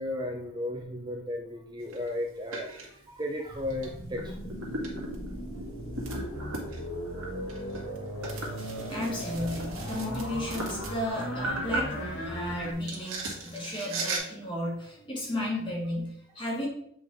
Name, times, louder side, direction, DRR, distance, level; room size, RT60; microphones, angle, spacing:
voice 1, 0.0-4.4 7.8-8.1 8.8-8.9, left 1 dB, 20° right, 1 dB, 0.6 m, -35 dB
sound 1, 1.8-2.1 2.5-2.9 3.7-3.8 4.2-12.5 12.9-14.2, right 2 dB, 90° right, 1.7 m, -37 dB
sound 2, 3.4-12.7, equal, 85° left, 1.6 m, -37 dB
voice 2, 8.2-16.7, left 1 dB, 25° left, -3 dB, 1.9 m, -34 dB
7.5 x 4.6 x 3.5 m, 0.68 s
head